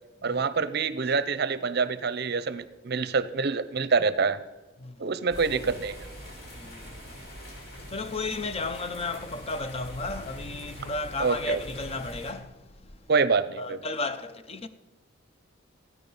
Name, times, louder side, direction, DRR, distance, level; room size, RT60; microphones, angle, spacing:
voice 1, 0.2-4.4 5.0-6.1 11.2-11.6 13.1-13.8, right 4 dB, 55° right, 0.7 m, -26 dB
sound 1, 5.3-12.3, equal, 55° left, 5.0 m, -43 dB
voice 2, 6.5-7.2 7.8-13.1 13.6-14.7, left 3 dB, 30° left, 0.7 m, -34 dB
15.0 x 9.5 x 5.5 m
head